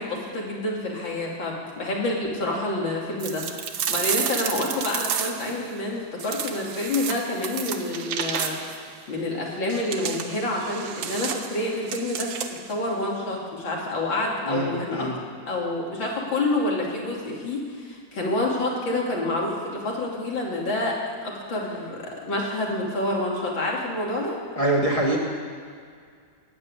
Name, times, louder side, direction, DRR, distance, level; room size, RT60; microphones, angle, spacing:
voice 1, 0.0-8.6 9.1-12.3 12.7-15.1 15.5-21.0 21.2-24.4, left 2 dB, 80° left, -3 dB, 3.4 m, -28 dB
sound 1, 3.2-5.6 6.2-8.8 9.7-12.7, right 8 dB, 80° right, 1.7 m, -31 dB
voice 2, 14.4-15.1 24.6-25.2, right 1 dB, 20° left, -3 dB, 1.9 m, -24 dB
14.0 x 8.7 x 9.6 m, 2.1 s
omnidirectional pair, 2.1 m